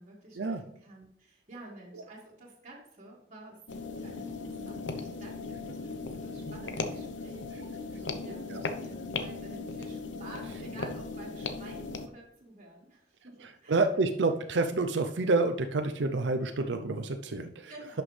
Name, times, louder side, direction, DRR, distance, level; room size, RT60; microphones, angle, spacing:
voice 1, 0.0-14.1 17.7-18.0, right 1 dB, 40° right, -5 dB, 1.9 m, -50 dB
sound 1, 3.7-12.1, left 3 dB, 85° left, 0.9 m, -38 dB
voice 2, 13.4-17.7, right 3 dB, 70° right, 6 dB, 0.6 m, -28 dB
11.0 x 6.0 x 3.3 m, 0.77 s
head